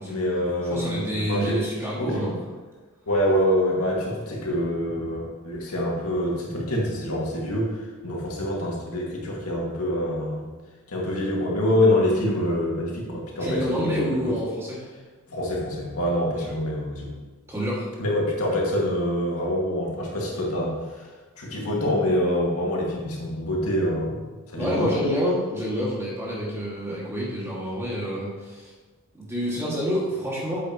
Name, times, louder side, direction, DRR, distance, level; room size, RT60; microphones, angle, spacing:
voice 1, 0.0-1.6 2.0-2.3 3.1-10.5 10.9-14.4 15.3-17.2 18.0-21.1 21.4-25.0, left 1 dB, 90° left, -3 dB, 2.1 m, -26 dB
voice 2, 0.7-2.3 13.4-14.9 17.5-17.9 24.6-28.7 29.1-30.6, equal, 10° right, -6 dB, 2.0 m, -28 dB
9.1 x 7.8 x 3.0 m, 1.3 s
head